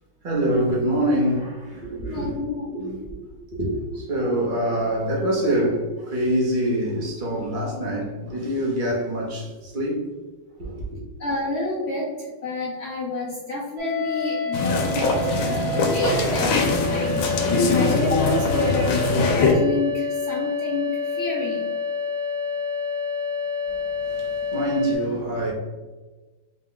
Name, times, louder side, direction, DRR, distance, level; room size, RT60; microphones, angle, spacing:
voice 1, 0.2-3.2 3.5-10.0 10.6-10.8 23.7-25.5, right 1 dB, 40° right, 0.7 m, -25 dB
voice 2, 2.0-2.9 11.2-21.7, left 2 dB, 65° left, 0.6 m, -29 dB
sound 1, 13.8-25.0, left 4 dB, 80° right, 1.7 m, -28 dB
sound 2, 14.5-19.5, left 3 dB, 85° left, 1.5 m, -22 dB
4.6 x 2.3 x 3.7 m
omnidirectional pair, 2.2 m